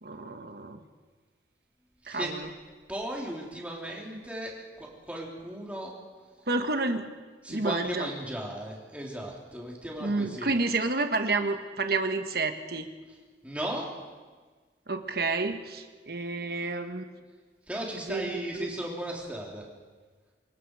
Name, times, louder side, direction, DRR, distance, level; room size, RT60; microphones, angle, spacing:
voice 1, 0.0-0.8 2.1-2.5 6.5-7.1 7.5-8.1 10.0-12.9 14.9-17.0 18.1-18.7, right 3 dB, 55° right, 6 dB, 1.4 m, -30 dB
voice 2, 2.9-5.9 7.4-10.5 13.4-13.9 17.7-19.6, right 1 dB, 5° right, -3 dB, 3.8 m, -36 dB
25.5 x 22.0 x 4.9 m, 1.4 s
head